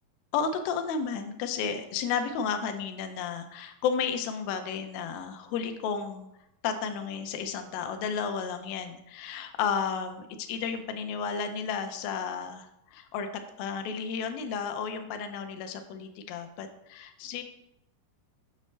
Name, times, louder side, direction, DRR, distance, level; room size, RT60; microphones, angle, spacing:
voice 1, 0.3-6.3 6.6-17.4, left 6 dB, 80° left, 7 dB, 2.3 m, -32 dB
6.6 x 6.2 x 3.2 m, 0.84 s
omnidirectional pair, 4.2 m